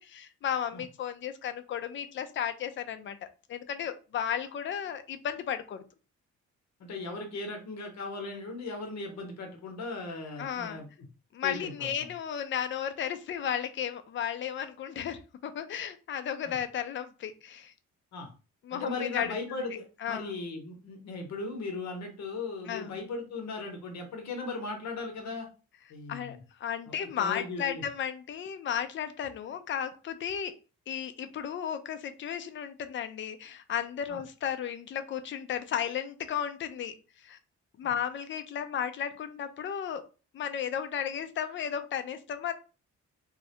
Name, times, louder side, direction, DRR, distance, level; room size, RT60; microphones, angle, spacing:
voice 1, 0.0-3.2 3.5-5.8 10.4-10.8 11.3-17.7 18.6-19.4 20.0-20.3 22.7-23.0 26.1-30.5 30.9-37.4 37.8-40.0 40.3-42.5, left 9 dB, 40° left, 9 dB, 0.4 m, -34 dB
voice 2, 6.8-10.9 11.4-11.9 16.5-16.6 18.1-18.3 18.7-25.5 25.9-26.4 26.9-27.8 34.1-34.2 37.8-37.9, left 3 dB, 65° left, 3 dB, 0.8 m, -37 dB
2.3 x 2.1 x 2.7 m, 0.34 s
cardioid pair, 90°, 30 cm